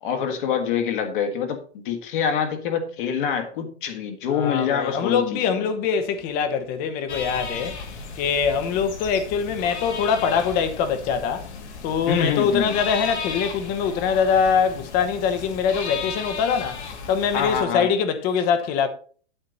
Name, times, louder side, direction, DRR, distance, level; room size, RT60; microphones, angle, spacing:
voice 1, 0.0-5.7 12.1-12.7 17.3-17.9, left 7 dB, 50° left, 1.7 m, -25 dB
voice 2, 4.3-7.8 8.2-11.5 11.8-18.9, left 6 dB, 25° left, 1.1 m, -23 dB
sound 1, 7.1-17.6, left 5 dB, 75° left, 2.6 m, -35 dB
8.9 x 7.7 x 4.0 m
hypercardioid pair, 150°, 34 cm